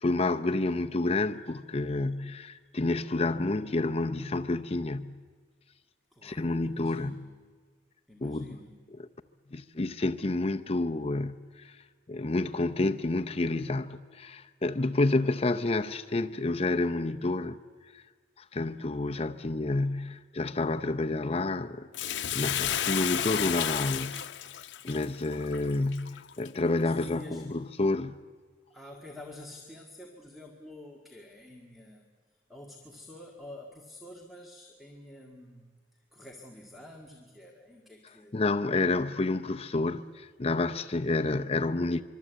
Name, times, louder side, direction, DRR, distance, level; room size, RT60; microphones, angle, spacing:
voice 1, 0.0-5.2 6.2-7.3 8.2-8.6 9.5-11.4 11.6-11.7 12.1-17.6 18.5-24.2 24.8-28.2 38.3-42.0, left 2 dB, 35° left, 0.6 m, -29 dB
voice 2, 6.1-7.2 8.1-9.0 26.8-27.5 28.7-32.0 32.5-35.7 36.1-38.4, left 1 dB, ahead, 1.9 m, -48 dB
Bathtub (filling or washing), 21.9-26.5 27.0-27.1, left 10 dB, 80° left, 0.7 m, -32 dB
24.5 x 23.5 x 8.2 m
head